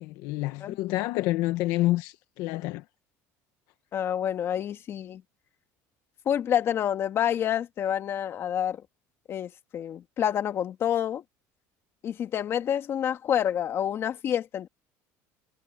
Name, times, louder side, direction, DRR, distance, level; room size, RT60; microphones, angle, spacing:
voice 1, 0.0-2.8, left 17 dB, 70° left, 1.1 m, -28 dB
voice 2, 3.9-5.2 6.3-8.8 9.3-11.2 12.0-14.7, left 10 dB, 40° left, 2.1 m, -28 dB
cardioid pair, 140°, 7 cm